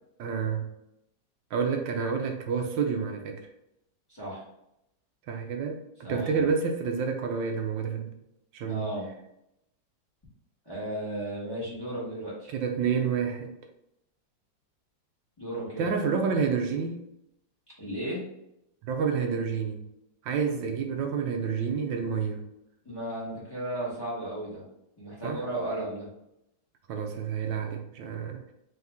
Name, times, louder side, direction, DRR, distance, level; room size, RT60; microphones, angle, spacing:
voice 1, 0.2-0.7 1.5-3.5 5.3-8.1 8.5-8.9 12.5-13.5 15.8-17.0 18.8-19.8 20.2-22.4 25.2-25.4 26.9-28.4, right 6 dB, 80° right, 3 dB, 1.3 m, -29 dB
voice 2, 4.1-4.4 6.0-6.5 8.7-9.1 10.6-12.5 15.4-15.9 17.8-18.2 22.8-24.6 25.0-26.1, right 1 dB, 15° left, -7 dB, 1.2 m, -34 dB
3.9 x 2.8 x 3.5 m, 0.82 s
omnidirectional pair, 2.1 m